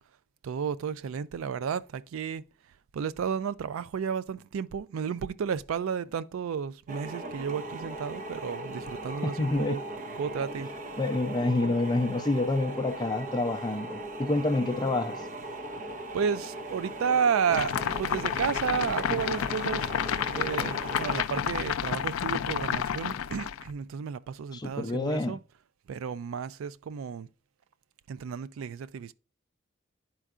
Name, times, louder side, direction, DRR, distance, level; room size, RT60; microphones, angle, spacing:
voice 1, 0.4-2.4 2.9-9.8 10.2-10.7 16.1-19.9 20.2-25.4 25.9-27.3 28.1-29.1, right 7 dB, 80° right, 0.3 m, -32 dB
sound 1, 6.9-21.2, right 2 dB, 40° right, 0.6 m, -39 dB
voice 2, 9.2-9.8 11.0-15.2 24.5-25.4, left 2 dB, 20° left, 0.4 m, -28 dB
sound 2, 17.5-23.7, left 8 dB, 80° left, 0.4 m, -30 dB
11.0 x 4.5 x 2.4 m
head